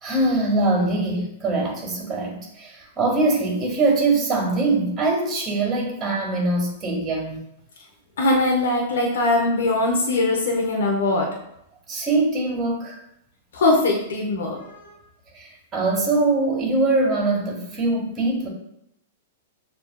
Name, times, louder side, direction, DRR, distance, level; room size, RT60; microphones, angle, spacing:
voice 1, 0.0-7.4 11.9-13.0 15.3-18.5, right 2 dB, 20° right, -2 dB, 1.6 m, -23 dB
voice 2, 8.2-11.3 13.5-14.9, left 2 dB, 70° left, 0 dB, 0.7 m, -21 dB
6.4 x 2.7 x 2.3 m, 0.78 s
hypercardioid pair, 110°, 0 cm